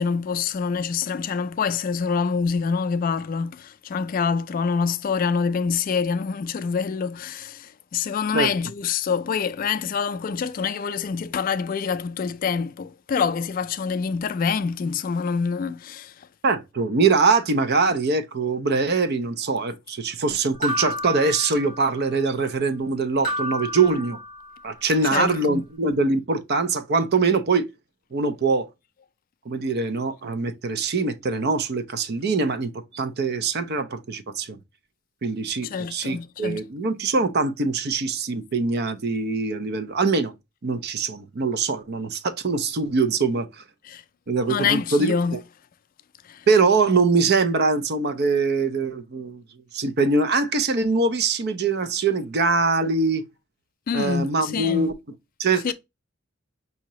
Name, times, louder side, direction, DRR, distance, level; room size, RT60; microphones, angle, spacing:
voice 1, 0.0-16.3 25.1-25.6 35.6-36.6 43.8-44.0 44.5-45.4 46.2-46.5 53.9-54.9 55.6-55.7, left 6 dB, 40° left, 0.3 m, -26 dB
voice 2, 16.4-24.2 24.6-27.7 28.1-28.7 29.5-34.6 35.2-40.3 40.6-43.6 44.3-45.2 46.5-49.4 49.7-53.2 53.9-54.9 55.4-55.7, right 4 dB, 50° right, 0.6 m, -23 dB
sound 1, 20.6-22.1 23.2-24.7, equal, 20° right, 2.6 m, -31 dB
4.9 x 2.8 x 3.0 m
head